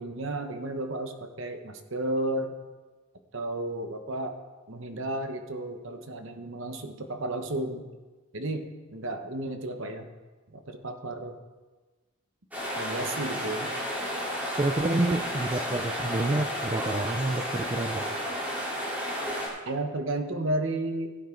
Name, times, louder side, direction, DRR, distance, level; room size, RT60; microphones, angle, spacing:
voice 1, 0.0-2.5 3.3-4.4 4.7-7.8 8.3-10.1 10.5-11.4 12.8-13.7 19.6-21.1, right 1 dB, 60° right, 6 dB, 1.1 m, -33 dB
sound 1, 12.5-19.5, equal, 5° right, 3.5 m, -32 dB
voice 2, 14.6-18.0, right 2 dB, 25° right, 6 dB, 0.5 m, -28 dB
16.0 x 9.2 x 3.9 m, 1.3 s
head